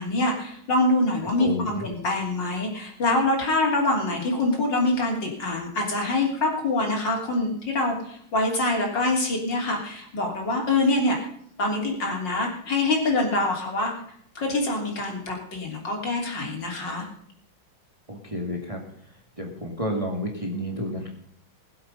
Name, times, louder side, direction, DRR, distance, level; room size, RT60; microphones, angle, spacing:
voice 1, 0.0-11.2 11.6-13.9 14.4-17.1, left 2 dB, 60° left, 0 dB, 3.9 m, -25 dB
voice 2, 1.4-1.8 18.1-18.8 19.4-21.1, equal, 15° right, 1 dB, 2.2 m, -30 dB
21.0 x 7.9 x 5.4 m, 0.67 s
omnidirectional pair, 2.2 m